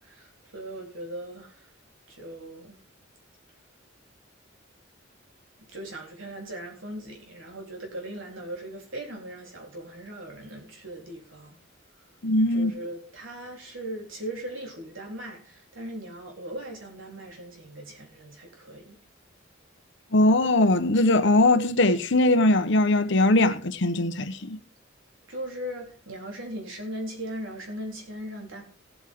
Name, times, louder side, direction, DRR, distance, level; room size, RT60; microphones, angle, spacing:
voice 1, 0.0-1.7 2.1-2.8 5.7-11.6 12.5-19.0 25.3-28.6, right 1 dB, 85° right, 3.8 m, -39 dB
voice 2, 12.2-12.7 20.1-24.6, left 2 dB, 65° left, 1.0 m, -21 dB
17.5 x 8.1 x 3.6 m
head